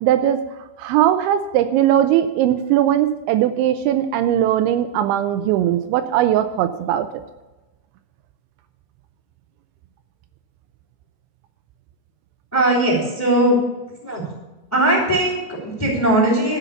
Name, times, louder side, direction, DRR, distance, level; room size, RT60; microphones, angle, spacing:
voice 1, 0.0-0.4 0.8-7.1, right 11 dB, 85° right, 9 dB, 2.8 m, -19 dB
voice 2, 12.5-13.6 14.0-14.2 14.7-16.6, right 1 dB, 5° left, -2 dB, 2.1 m, -19 dB
12.5 x 5.7 x 8.1 m, 1.1 s
omnidirectional pair, 5.4 m